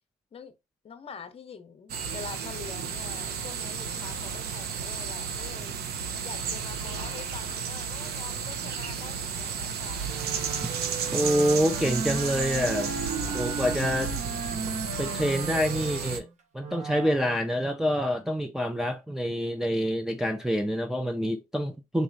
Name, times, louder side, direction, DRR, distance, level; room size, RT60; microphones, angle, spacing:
voice 1, 0.8-5.8 6.2-10.3, left 6 dB, 35° left, 0.7 m, -45 dB
sound 1, 1.9-16.2, right 6 dB, 70° right, 0.7 m, -33 dB
Wind instrument woodwind instrument, 10.1-17.4, right 3 dB, 45° right, 0.9 m, -37 dB
voice 2, 11.1-12.9 13.3-14.2 15.0-16.3 16.5-22.0, equal, 5° right, 0.4 m, -27 dB
3.9 x 3.0 x 2.6 m
cardioid pair, 110°, 17 cm